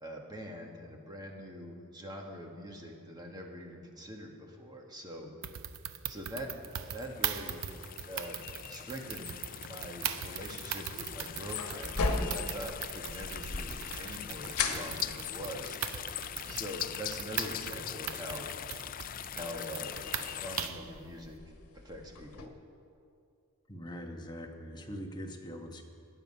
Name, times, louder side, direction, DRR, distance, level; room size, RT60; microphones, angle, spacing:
voice 1, 0.0-5.3 6.1-6.5 6.9-8.4 8.7-15.9 16.5-18.5 19.3-20.0 20.4-21.4 21.7-22.5, equal, 20° right, 1 dB, 1.6 m, -44 dB
sound 1, 5.4-20.9, right 9 dB, 65° right, 0.7 m, -40 dB
sound 2, 6.8-20.7, left 10 dB, 40° left, 0.4 m, -42 dB
sound 3, 10.8-22.5, left 3 dB, 80° left, 1.3 m, -40 dB
voice 2, 23.7-25.8, equal, 20° left, 2 dB, 1.2 m, -42 dB
20.0 x 9.2 x 5.5 m, 2.4 s
head